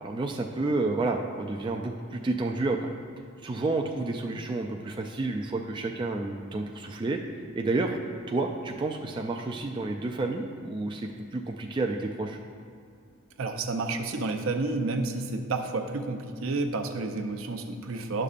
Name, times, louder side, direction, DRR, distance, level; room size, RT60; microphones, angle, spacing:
voice 1, 0.0-2.9 3.4-7.2 7.6-8.0 8.3-12.4, right 2 dB, 20° right, 2 dB, 0.3 m, -30 dB
voice 2, 13.4-18.2, right 3 dB, 65° right, 6 dB, 0.6 m, -30 dB
10.5 x 6.7 x 2.5 m, 2.4 s
head